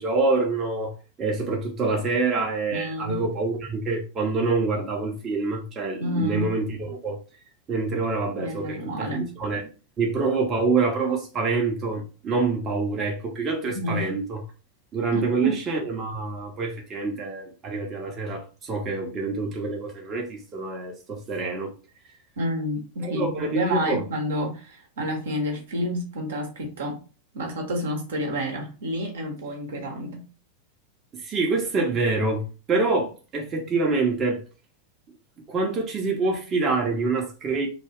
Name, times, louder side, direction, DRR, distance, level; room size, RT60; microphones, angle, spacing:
voice 1, 0.0-7.2 7.7-9.7 10.0-14.4 14.9-21.7 23.0-24.0 31.1-32.4 32.7-34.4 35.5-37.7, right 3 dB, 25° right, 0.6 m, -26 dB
voice 2, 2.7-3.2 6.0-6.5 8.4-9.3 13.7-14.0 15.1-15.6 22.4-27.0 27.3-30.2, equal, 60° right, 0.8 m, -29 dB
2.3 x 2.2 x 3.4 m
figure-of-eight pair, 90°, 0 cm